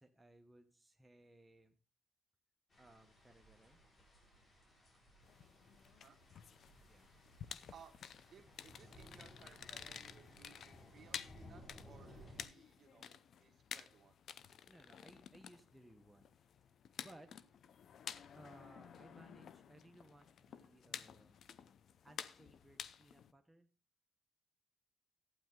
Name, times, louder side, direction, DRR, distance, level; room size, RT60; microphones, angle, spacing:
voice 1, 0.0-1.8 2.8-3.8 6.9-7.1 14.7-16.3 16.6-16.7 17.0-17.3 18.3-21.4 22.0-23.7, right 1 dB, 5° right, 4 dB, 1.1 m, -62 dB
sound 1, 2.7-12.5, left 1 dB, 40° left, 4.7 m, -60 dB
sound 2, 5.2-23.3, left 8 dB, 65° left, 0.6 m, -52 dB
voice 2, 8.3-14.1, right 7 dB, 50° right, 5 dB, 1.8 m, -62 dB
12.0 x 9.1 x 3.7 m, 0.32 s
cardioid pair, 90°, 0 cm